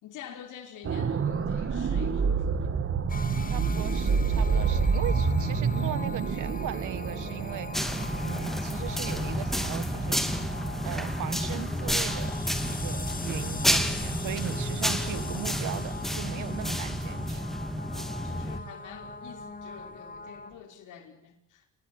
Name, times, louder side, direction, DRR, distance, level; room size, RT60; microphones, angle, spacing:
voice 1, 0.0-2.7 3.1-3.5 17.9-21.7, left 8 dB, 85° left, 6 dB, 5.1 m, -48 dB
sound 1, 0.8-18.7 19.1-19.3, right 5 dB, 45° right, 2.7 m, -30 dB
sound 2, 3.1-20.5, left 3 dB, 30° left, 3.0 m, -41 dB
voice 2, 3.5-7.9 8.2-10.2 10.8-12.3 12.6-17.4, right 12 dB, 80° right, 16 dB, 1.8 m, -38 dB
sound 3, 7.7-18.6, equal, ahead, 2.9 m, -31 dB
28.5 x 20.0 x 9.3 m, 0.75 s
cardioid pair, 90°, 30 cm